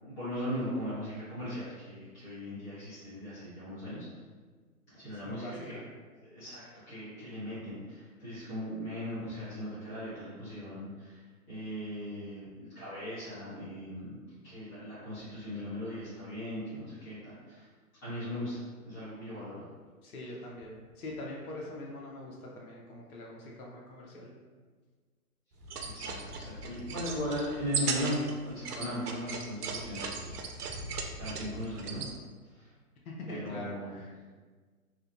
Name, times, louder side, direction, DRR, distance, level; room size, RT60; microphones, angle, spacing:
voice 1, 0.0-4.0 4.9-5.7 6.2-11.2 11.5-14.1 14.4-17.7 18.0-19.6 25.8-30.6 31.1-32.1 32.5-32.7 33.3-33.9, equal, 20° left, -15 dB, 0.8 m, -38 dB
voice 2, 5.1-5.8 20.0-24.3 33.0-34.1, left 1 dB, 70° left, -2 dB, 0.7 m, -43 dB
sound 1, 25.6-32.1, right 4 dB, 85° right, 0.5 m, -37 dB
2.7 x 2.1 x 2.4 m, 1.5 s
hypercardioid pair, 150°, 45 cm